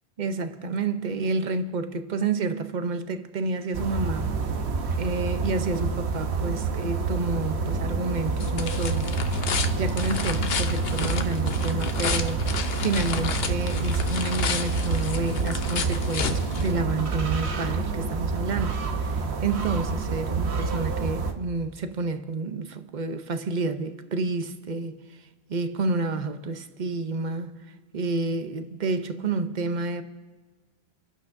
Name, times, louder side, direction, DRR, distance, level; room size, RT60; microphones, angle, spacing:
voice 1, 0.2-4.3 5.0-9.1 9.7-12.4 12.8-25.0 25.5-27.5 27.9-30.0, right 3 dB, 50° right, 0.8 m, -29 dB
sound 1, 3.7-21.3, right 4 dB, 80° right, 1.2 m, -28 dB
sound 2, 7.7-17.2, left 6 dB, 70° left, 1.0 m, -32 dB
29.5 x 11.0 x 2.6 m
omnidirectional pair, 1.1 m